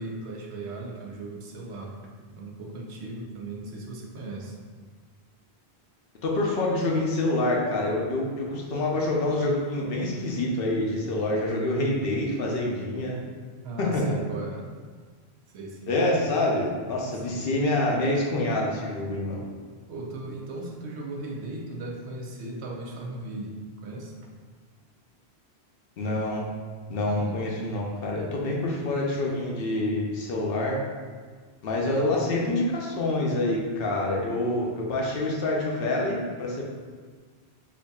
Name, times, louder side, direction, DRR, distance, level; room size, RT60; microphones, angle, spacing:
voice 1, 0.0-4.6 13.6-14.6 15.5-15.9 17.1-17.4 19.9-24.1 27.1-27.4, right 2 dB, 80° right, 0 dB, 0.9 m, -37 dB
voice 2, 6.2-13.2 13.8-14.1 15.9-19.4 26.0-26.4 26.9-30.8 31.6-36.6, left 2 dB, 65° left, -2 dB, 0.8 m, -26 dB
4.6 x 2.6 x 2.2 m, 1.6 s
omnidirectional pair, 1.1 m